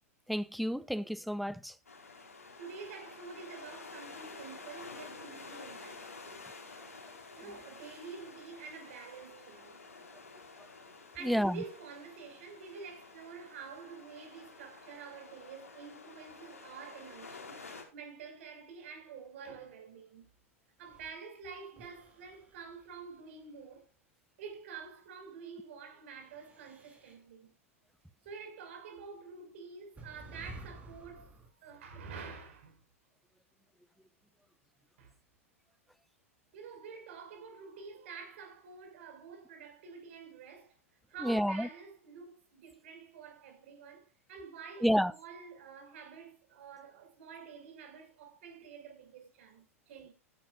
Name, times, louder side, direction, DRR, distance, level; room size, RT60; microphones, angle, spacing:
voice 1, 0.3-1.7 11.2-11.6 41.2-41.7 44.8-45.1, equal, ahead, 0.7 m, -30 dB
sound 1, 1.8-17.8, left 4 dB, 80° left, 4.6 m, -50 dB
voice 2, 2.6-6.5 7.3-9.8 11.1-20.2 20.8-23.9 24.4-27.6 28.2-31.4 31.6-32.8 35.0-35.1 36.5-40.8 41.1-50.1, right 5 dB, 55° right, 5.8 m, -48 dB
sound 2, 20.8-21.1 21.8-23.8 26.2-27.2 28.8-28.9 30.0-31.5, right 2 dB, 15° right, 4.1 m, -52 dB
15.0 x 11.5 x 2.5 m
figure-of-eight pair, 95°, 8 cm